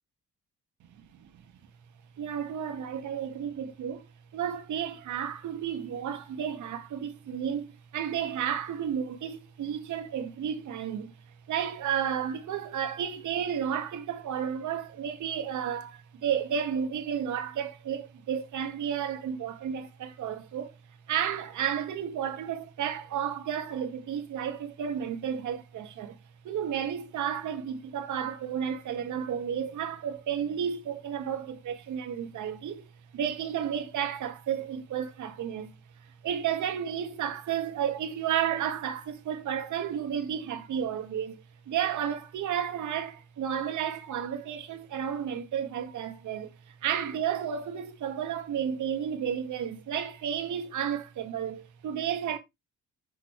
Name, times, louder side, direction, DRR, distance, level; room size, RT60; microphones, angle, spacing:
voice 1, 2.2-4.1 4.3-11.1 11.5-20.7 21.1-26.2 26.4-35.7 36.0-52.4, right 8 dB, 75° right, 2.0 m, -32 dB
7.1 x 6.4 x 3.3 m
cardioid pair, 90°, 30 cm